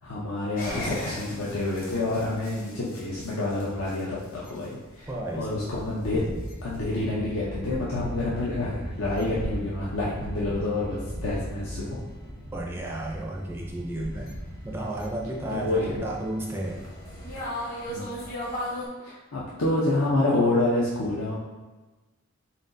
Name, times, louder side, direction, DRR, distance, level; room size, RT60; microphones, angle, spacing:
voice 1, 0.0-6.2 6.6-12.0 15.5-16.0 17.9-18.1 19.0-21.3, left 2 dB, 75° left, -6 dB, 0.6 m, -28 dB
sound 1, 0.6-18.9, equal, 40° left, 0.9 m, -37 dB
voice 2, 5.1-5.6 12.5-14.3 14.6-16.8, right 1 dB, 10° right, -2 dB, 0.4 m, -33 dB
4.3 x 3.7 x 2.6 m, 1.2 s
head